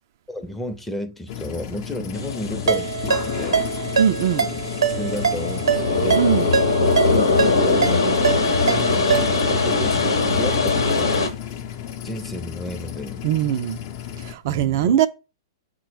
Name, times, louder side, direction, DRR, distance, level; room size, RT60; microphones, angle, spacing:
voice 1, 0.3-3.6 4.4-4.6 5.0-6.2 7.0-7.9 8.6-11.2 12.0-13.2 14.5-15.0, left 1 dB, 5° left, 0.5 m, -32 dB
sound 1, 1.3-14.3, left 10 dB, 50° left, 0.6 m, -34 dB
sound 2, 2.1-11.3, left 3 dB, 80° left, 0.9 m, -22 dB
Ringtone, 2.7-9.5, right 6 dB, 80° right, 0.7 m, -24 dB
voice 2, 4.0-4.4 6.1-6.5 13.2-13.8 14.2-15.1, right 10 dB, 50° right, 0.3 m, -20 dB
5.8 x 2.1 x 4.4 m
hypercardioid pair, 115°, 2 cm